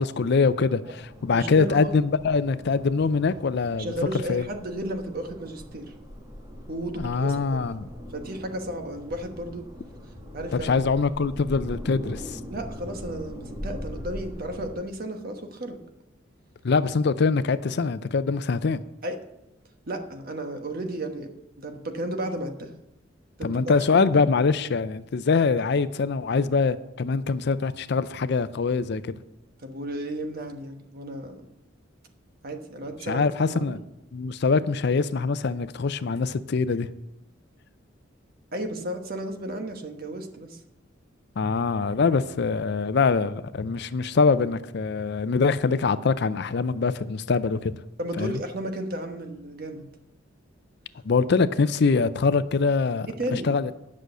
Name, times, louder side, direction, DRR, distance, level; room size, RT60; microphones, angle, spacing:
voice 1, 0.0-3.9 4.3-4.4 7.0-7.9 10.5-12.4 16.6-18.8 23.4-29.2 33.1-33.8 34.1-36.9 41.4-47.8 48.2-48.4 51.0-53.7, left 4 dB, 60° left, 0.5 m, -24 dB
sound 1, 1.0-14.7, left 1 dB, 20° right, 2.1 m, -41 dB
voice 2, 1.3-1.9 3.8-5.9 6.7-7.4 8.1-9.7 10.3-10.7 12.5-15.8 19.0-19.2 19.8-22.7 23.4-23.5 29.6-31.4 32.4-33.8 38.5-40.6 48.0-49.9 53.1-53.5, right 1 dB, 50° right, 1.2 m, -33 dB
10.5 x 6.3 x 6.6 m
head